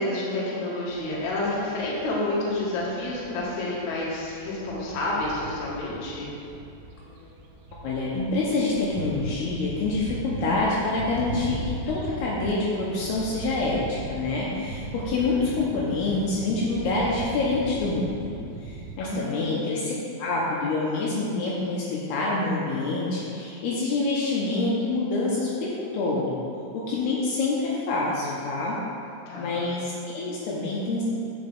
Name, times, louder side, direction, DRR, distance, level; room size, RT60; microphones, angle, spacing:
voice 1, 0.0-6.3 15.2-15.4 19.0-19.7 29.3-29.6, left 2 dB, 55° left, -6 dB, 2.2 m, -29 dB
sound 1, 0.9-19.0, right 2 dB, 90° right, 3.0 m, -39 dB
voice 2, 7.8-19.9 20.2-26.4 26.7-28.8 29.4-31.0, left 3 dB, 75° left, -5 dB, 2.7 m, -26 dB
8.0 x 6.4 x 3.4 m, 2.6 s
omnidirectional pair, 5.0 m